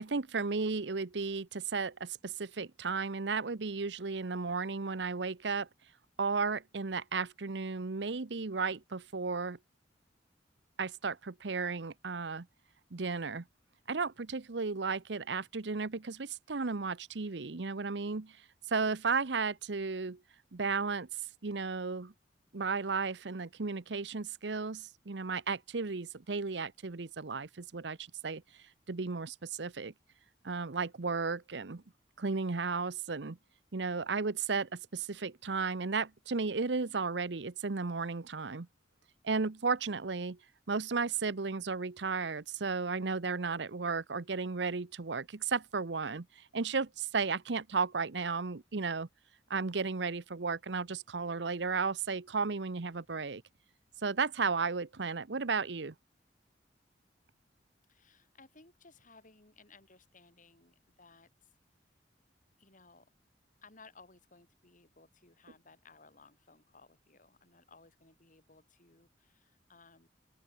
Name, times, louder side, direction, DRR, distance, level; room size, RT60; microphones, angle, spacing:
voice 1, 0.0-5.7 6.2-9.6 10.8-12.5 12.9-13.4 13.9-18.4 18.7-20.2 20.5-21.1 21.4-22.1 22.5-28.4 28.9-29.9 30.4-31.8 32.2-33.4 33.7-38.7 39.2-40.4 40.7-46.3 46.5-49.1 49.5-53.4 54.0-55.9, right 4 dB, 70° right, 0.9 m, -34 dB
voice 2, 57.9-61.5 62.6-63.1 63.6-70.1, left 3 dB, 45° left, 5.7 m, -60 dB
open air
head